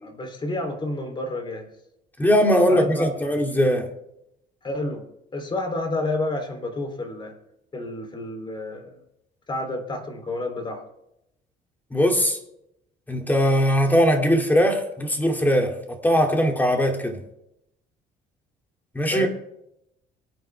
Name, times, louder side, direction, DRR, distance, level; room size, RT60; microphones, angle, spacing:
voice 1, 0.0-1.7 2.7-3.4 4.6-7.3 7.7-9.0 9.5-10.8 19.0-19.3, left 2 dB, 30° left, 3.3 m, -30 dB
voice 2, 2.2-3.9 11.9-12.4 13.1-17.2 18.9-19.3, equal, 10° left, 2.5 m, -20 dB
25.0 x 9.4 x 3.4 m
cardioid pair, 110°, 17 cm